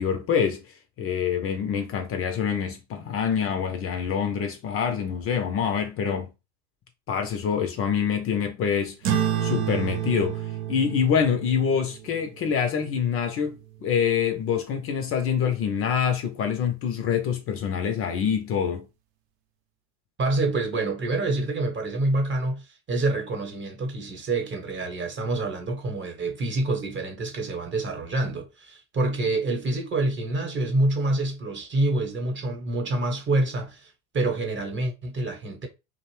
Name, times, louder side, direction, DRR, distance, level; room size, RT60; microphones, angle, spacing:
voice 1, 0.0-6.3 7.1-18.8, left 7 dB, 40° left, 0.5 m, -26 dB
sound 1, 9.0-13.9, right 9 dB, 65° right, 0.6 m, -30 dB
voice 2, 20.2-35.7, right 2 dB, 30° right, 0.9 m, -27 dB
2.5 x 2.0 x 3.1 m
supercardioid pair, 95°, 36 cm